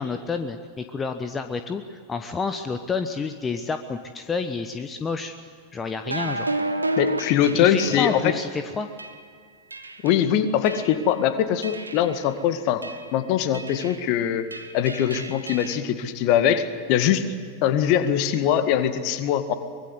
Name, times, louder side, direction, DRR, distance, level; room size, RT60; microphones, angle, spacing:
voice 1, 0.0-5.4 5.7-6.5 7.5-8.9, left 5 dB, 20° left, 8 dB, 1.1 m, -29 dB
sound 1, 6.0-8.3 9.0-9.2 9.7-10.2 10.7-11.1 11.6-12.2 12.8-13.1 13.5-14.1 14.5-15.8, right 1 dB, 80° right, 1.5 m, -31 dB
voice 2, 7.0-8.3 10.0-12.8 13.1-14.4 14.7-17.3 17.6-19.5, left 9 dB, 45° left, 10 dB, 1.9 m, -22 dB
24.5 x 22.0 x 8.0 m, 2.1 s
figure-of-eight pair, 90°, 0 cm